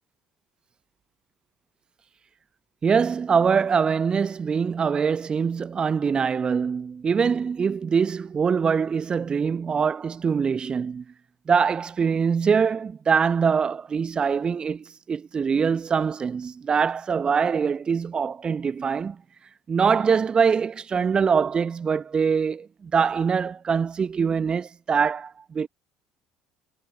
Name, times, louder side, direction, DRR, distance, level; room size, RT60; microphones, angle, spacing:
voice 1, 2.8-11.0 11.5-19.2 19.7-25.7, right 6 dB, 30° right, 1.1 m, -23 dB
figure-of-eight pair, 55°, 3 cm